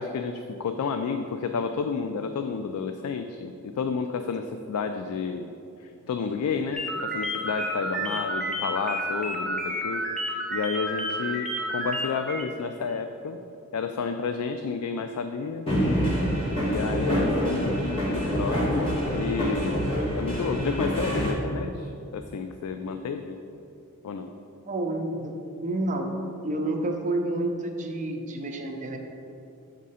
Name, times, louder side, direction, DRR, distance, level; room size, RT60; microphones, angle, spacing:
voice 1, 0.0-5.5 6.1-10.1 10.5-13.4 13.7-16.2 16.7-19.8 20.2-23.4 24.0-24.3, left 5 dB, 80° left, 7 dB, 0.3 m, -31 dB
sound 1, 6.7-12.5, equal, 5° left, 0.8 m, -30 dB
sound 2, 15.7-21.3, equal, 25° left, 1.5 m, -26 dB
voice 2, 24.6-25.3 25.6-26.2 26.4-29.0, right 2 dB, 35° right, 3 dB, 0.6 m, -29 dB
7.4 x 3.7 x 5.5 m, 2.7 s
head